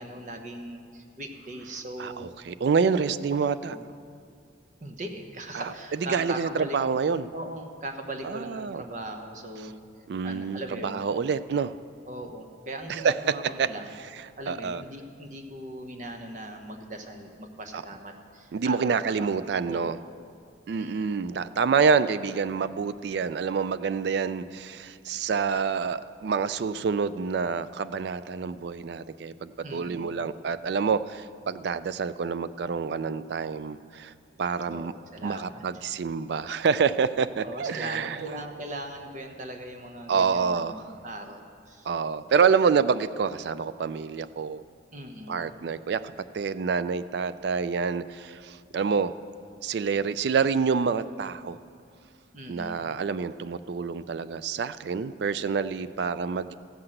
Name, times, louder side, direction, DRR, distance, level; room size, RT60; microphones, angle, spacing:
voice 1, 0.0-2.3 3.0-3.2 3.7-3.8 4.8-6.8 7.3-9.8 10.2-11.0 12.1-13.9 14.4-19.3 19.7-19.9 20.8-21.2 29.6-30.0 34.7-35.6 37.4-41.9 44.9-45.3 52.3-52.8, right 1 dB, 40° right, 4 dB, 1.0 m, -39 dB
voice 2, 2.0-3.8 5.5-5.7 6.1-7.3 8.2-8.8 10.1-11.7 12.9-13.1 13.6-13.7 14.5-14.8 17.7-17.8 18.5-20.0 20.7-34.1 34.4-34.9 35.2-38.2 40.1-40.8 41.9-44.6 45.3-49.1 49.6-51.6 52.5-56.5, right 5 dB, 60° right, 15 dB, 0.3 m, -27 dB
15.0 x 5.8 x 7.8 m, 2.2 s
head